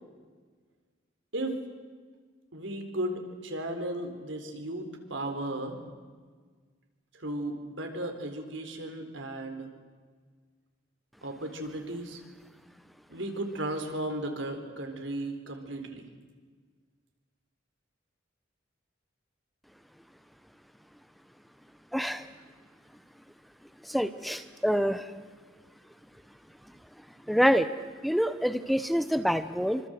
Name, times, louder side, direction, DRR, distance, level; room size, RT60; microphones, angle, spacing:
voice 1, 2.5-5.8 7.2-9.7 11.2-12.2 13.1-16.0, right 1 dB, 70° right, 5 dB, 4.1 m, -35 dB
voice 2, 21.9-22.2 23.9-25.0 27.3-27.7 28.0-29.8, equal, ahead, 11 dB, 0.8 m, -26 dB
25.5 x 25.0 x 8.0 m, 1.5 s
head